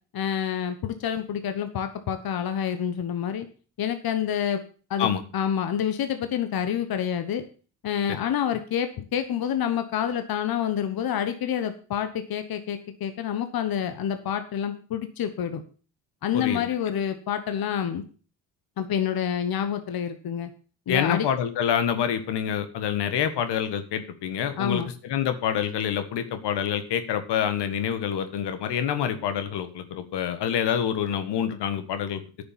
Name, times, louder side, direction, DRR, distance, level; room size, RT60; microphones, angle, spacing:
voice 1, 0.1-3.5 3.8-4.6 4.9-7.4 7.8-15.6 16.2-18.0 18.8-20.5 20.9-21.3 24.6-24.9, left 9 dB, 60° left, 9 dB, 1.3 m, -28 dB
voice 2, 16.3-16.7 20.9-32.4, left 9 dB, 75° left, 10 dB, 1.5 m, -27 dB
9.7 x 6.9 x 7.3 m, 0.39 s
supercardioid pair, 65°, 41 cm